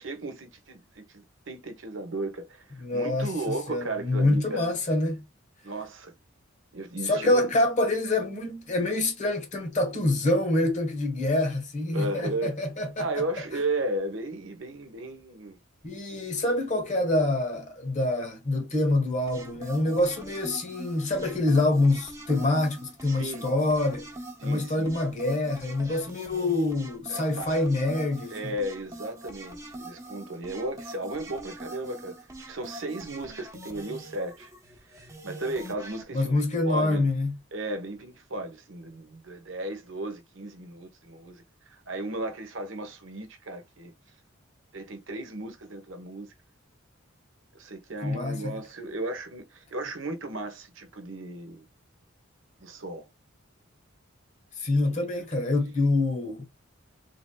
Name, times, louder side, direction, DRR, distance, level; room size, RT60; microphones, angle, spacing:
voice 1, 0.0-2.6 2.9-4.6 5.6-6.1 6.7-7.5 11.9-12.6 13.0-15.6 23.1-23.5 24.4-25.0 27.1-27.5 28.3-34.5 34.9-37.1 37.5-43.9 44.7-46.3 47.5-51.7 52.6-53.1 54.9-55.0, right 2 dB, 65° right, 1.0 m, -35 dB
voice 2, 2.8-5.3 7.0-13.2 15.8-24.1 24.4-28.4 36.1-37.4 48.0-48.5 54.6-56.5, left 2 dB, 35° left, 1.3 m, -26 dB
sound 1, 19.3-36.0, right 1 dB, 15° right, 0.9 m, -44 dB
3.5 x 3.3 x 2.2 m
head